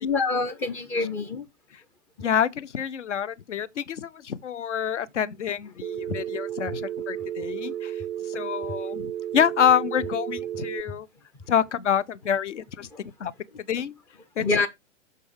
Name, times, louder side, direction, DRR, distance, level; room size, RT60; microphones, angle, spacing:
voice 1, 0.0-1.5 7.4-7.5 12.9-13.0 14.4-14.7, left 3 dB, 5° left, 0.3 m, -26 dB
voice 2, 2.2-8.0 8.3-11.1 11.5-13.3 13.7-14.0 14.4-14.7, left 8 dB, 75° left, 0.7 m, -27 dB
Telephone, 5.8-10.8, right 11 dB, 85° right, 0.6 m, -33 dB
6.5 x 5.2 x 4.8 m
figure-of-eight pair, 110°, 36 cm